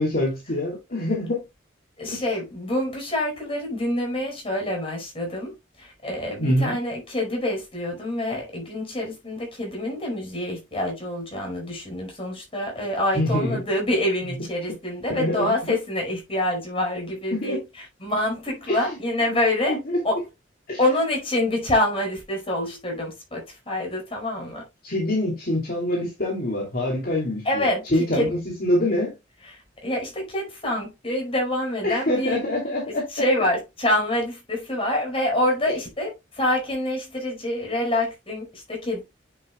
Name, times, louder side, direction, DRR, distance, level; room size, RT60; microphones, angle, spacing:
voice 1, 0.0-1.4 2.1-2.2 6.4-6.8 13.1-13.6 15.1-15.7 17.3-17.6 18.7-19.0 19.3-19.4 19.7-20.2 20.7-20.8 24.8-29.1 31.8-33.1, left 1 dB, 55° left, 2.7 m, -25 dB
voice 2, 2.0-17.6 18.0-19.8 20.0-20.2 20.8-24.6 27.4-27.8 28.1-28.3 29.8-32.4 33.1-39.0, left 1 dB, 30° left, 5.0 m, -26 dB
9.9 x 6.8 x 2.2 m
head